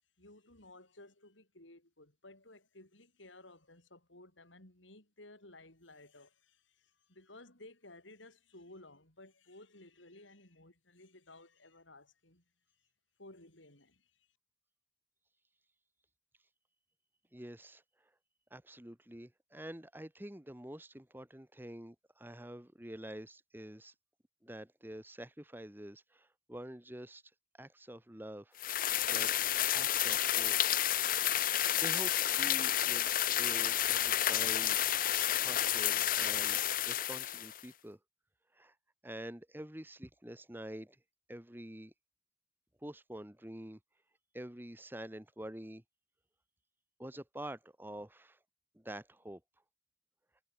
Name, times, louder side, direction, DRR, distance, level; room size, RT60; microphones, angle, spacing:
voice 1, 0.2-12.4 13.2-14.3, left 2 dB, 85° left, 7.9 m, -56 dB
voice 2, 17.3-18.1 18.5-23.9 24.4-27.2 27.6-28.8 29.1-29.3 29.7-30.5 31.8-34.8 35.4-36.6 36.8-38.0 38.5-38.7 39.0-41.0 41.3-41.9 42.8-43.8 44.3-45.8 47.0-48.4 48.7-49.4, right 1 dB, 10° right, 1.3 m, -47 dB
sound 1, 28.6-37.6, left 11 dB, 45° left, 0.8 m, -30 dB
head